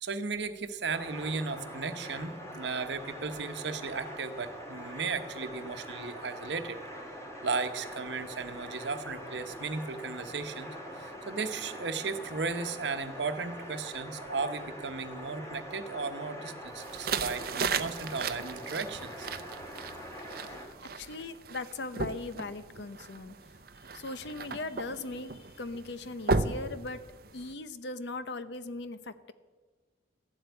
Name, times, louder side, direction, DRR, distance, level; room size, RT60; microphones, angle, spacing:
voice 1, 0.0-6.8 7.4-19.3 20.8-20.9, right 4 dB, 70° right, 9 dB, 1.0 m, -35 dB
sound 1, 0.9-20.7, equal, 15° left, 2.2 m, -43 dB
sound 2, 16.8-27.5, right 4 dB, 55° right, 0.6 m, -36 dB
voice 2, 20.4-23.4 23.9-27.0 27.3-29.3, left 3 dB, 65° left, 13 dB, 0.7 m, -39 dB
14.0 x 8.0 x 9.4 m, 1.4 s
head